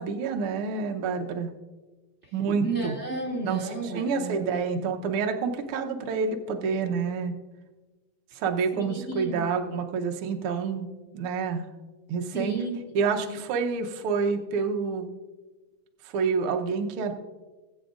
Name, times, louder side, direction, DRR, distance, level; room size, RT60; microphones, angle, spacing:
voice 1, 0.0-1.5 2.3-2.9 3.4-3.6 3.9-7.4 8.3-10.9 11.1-11.6 12.1-12.5 12.9-15.1 16.1-17.1, right 5 dB, 80° right, 4 dB, 1.2 m, -28 dB
voice 2, 2.6-4.6 8.7-9.4 12.3-12.9 13.2-13.4, right 3 dB, 55° right, -3 dB, 0.7 m, -33 dB
19.0 x 8.7 x 2.5 m, 1.2 s
omnidirectional pair, 3.7 m